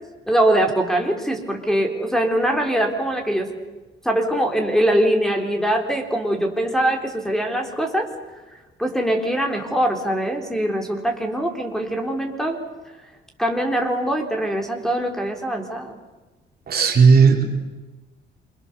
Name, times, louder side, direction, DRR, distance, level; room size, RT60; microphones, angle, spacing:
voice 1, 0.3-3.5 4.0-8.1 8.5-12.6 13.4-16.0, right 1 dB, ahead, 3 dB, 3.8 m, -22 dB
voice 2, 16.7-17.4, right 5 dB, 50° right, 2 dB, 3.7 m, -14 dB
28.0 x 23.5 x 6.9 m, 1.2 s
cardioid pair, 90°, 20 cm